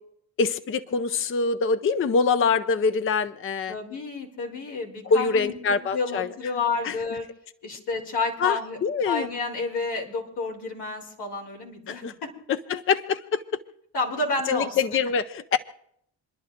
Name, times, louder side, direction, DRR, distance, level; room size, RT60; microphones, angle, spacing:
voice 1, 0.4-3.7 5.1-6.3 6.8-6.9 8.4-9.3 11.9-12.1 12.5-13.4 14.5-15.6, left 5 dB, 35° left, 11 dB, 0.6 m, -24 dB
voice 2, 3.7-7.2 7.6-8.8 9.0-12.3 13.9-15.0, left 3 dB, 80° left, -1 dB, 3.4 m, -30 dB
28.5 x 11.0 x 2.6 m, 0.71 s
cardioid pair, 75°, 39 cm